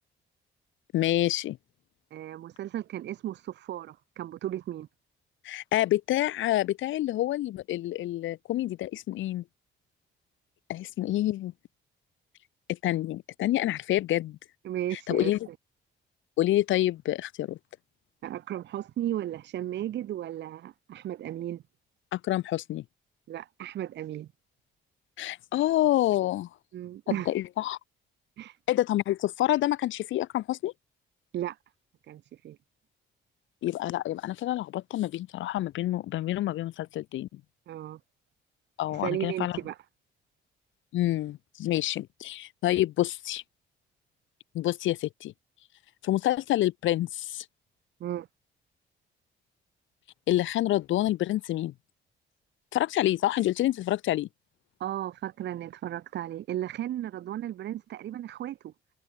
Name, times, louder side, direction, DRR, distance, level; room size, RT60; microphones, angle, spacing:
voice 1, 0.9-1.6 5.4-9.4 10.7-11.5 12.7-14.4 14.9-15.4 16.4-17.6 22.1-22.8 25.2-26.5 27.1-27.8 28.7-30.7 33.6-37.3 38.8-39.6 40.9-43.4 44.5-45.3 46.0-47.5 50.3-51.7 52.7-54.3, left 14 dB, 75° left, 0.8 m, -27 dB
voice 2, 2.1-4.9 14.6-15.5 18.2-21.6 23.3-24.3 26.7-27.3 28.4-28.6 31.3-31.6 32.1-32.6 37.7-38.0 38.9-39.8 48.0-48.3 54.8-58.7, right 12 dB, 60° right, 0.7 m, -35 dB
cardioid pair, 90°, 20 cm